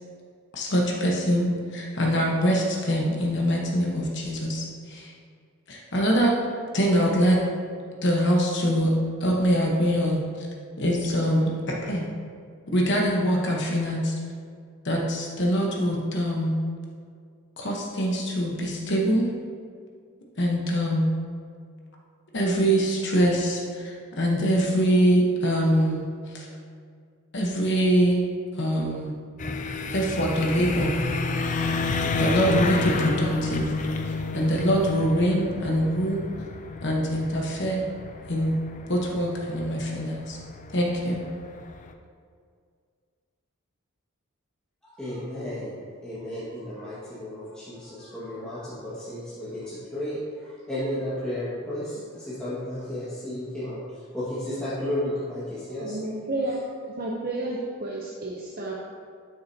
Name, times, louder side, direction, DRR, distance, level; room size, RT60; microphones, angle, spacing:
voice 1, 0.5-5.1 5.7-6.3 6.7-7.4 8.0-8.9 9.2-10.5 10.8-12.1 12.7-14.1 14.8-16.6 17.6-19.3 20.4-21.1 22.3-26.5 27.3-28.2 28.5-29.1 29.9-30.9 32.2-33.7 34.3-36.2 36.8-37.8 38.3-38.6 38.9-40.4 40.7-41.2, equal, 55° left, -1 dB, 1.1 m, -24 dB
sound 1, 29.4-41.9, left 3 dB, 35° left, 0.5 m, -30 dB
voice 2, 44.8-45.8 46.0-53.8 54.1-56.0, left 1 dB, 5° left, -14 dB, 1.8 m, -33 dB
voice 3, 55.8-58.7, right 2 dB, 45° right, -3 dB, 0.8 m, -31 dB
12.5 x 6.6 x 2.9 m, 2.2 s
head